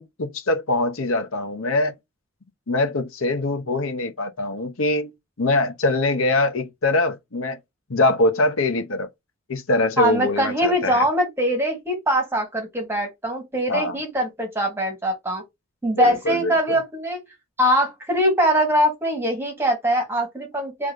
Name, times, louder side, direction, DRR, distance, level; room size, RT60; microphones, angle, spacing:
voice 1, 0.0-1.9 2.7-5.1 5.4-7.6 7.9-9.1 9.5-11.0 13.7-14.0 15.9-16.6, left 2 dB, 85° left, 1.0 m, -23 dB
voice 2, 10.0-15.4 15.8-17.2 17.6-20.9, equal, 10° right, 2.1 m, -22 dB
3.7 x 3.7 x 3.4 m
head